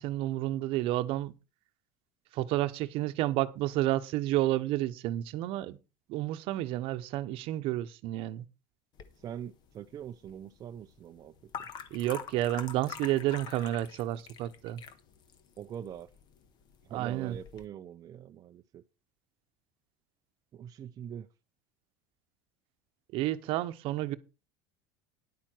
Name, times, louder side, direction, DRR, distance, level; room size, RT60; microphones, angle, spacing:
voice 1, 0.0-1.3 2.3-5.8 6.1-8.4 11.9-14.8 16.9-17.4 23.1-24.2, right 15 dB, 60° right, 0.9 m, -30 dB
sound 1, 8.9-17.6, left 7 dB, 40° left, 1.4 m, -47 dB
voice 2, 9.2-11.7 15.6-16.1 16.8-18.8 20.5-21.3, right 9 dB, 35° right, 0.6 m, -43 dB
10.5 x 8.9 x 4.5 m
supercardioid pair, 135°, 11 cm